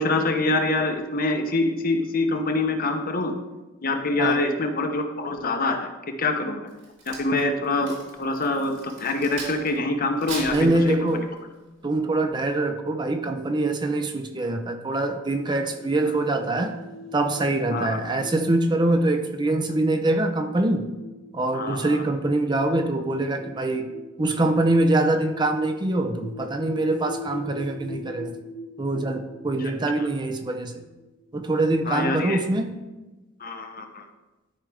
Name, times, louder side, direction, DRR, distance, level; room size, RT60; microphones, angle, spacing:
voice 1, 0.0-3.3 3.8-6.7 7.1-10.6 10.9-11.0 17.7-18.0 21.5-22.0 31.9-32.4 33.4-34.0, left 2 dB, 45° left, 5 dB, 0.8 m, -25 dB
Crack, 6.7-9.8 10.2-11.4 11.9-12.1, right 2 dB, 65° right, 2.9 m, -38 dB
voice 2, 10.5-11.3 11.8-16.8 17.1-20.9 21.3-23.9 24.2-28.4 28.8-30.8 31.3-32.7, right 2 dB, 20° right, 6 dB, 0.5 m, -24 dB
sound 1, 15.7-32.0, left 1 dB, 75° left, 1.8 m, -42 dB
12.5 x 4.9 x 3.4 m, 1.1 s
head